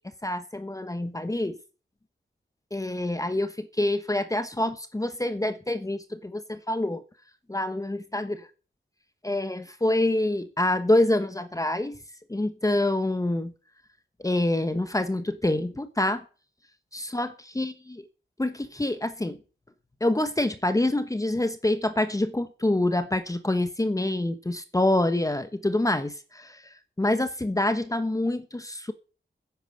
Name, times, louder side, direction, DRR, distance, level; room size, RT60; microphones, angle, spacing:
voice 1, 0.2-1.5 2.7-7.0 7.5-8.5 9.2-12.0 12.3-13.5 14.2-16.2 16.9-18.0 18.4-19.4 20.0-26.6 27.0-28.9, left 1 dB, 15° left, 1.1 m, -26 dB
10.5 x 9.1 x 9.1 m
wide cardioid pair, 115°, 20 cm